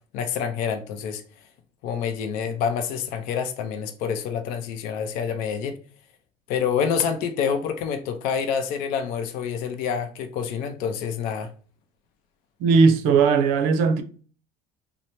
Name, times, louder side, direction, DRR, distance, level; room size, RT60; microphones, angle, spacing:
voice 1, 0.1-1.2 1.8-5.8 6.5-11.5, left 7 dB, 70° left, 0.5 m, -27 dB
voice 2, 12.6-14.0, right 5 dB, 75° right, 0.5 m, -18 dB
3.2 x 2.0 x 2.7 m
supercardioid pair, 105°, 16 cm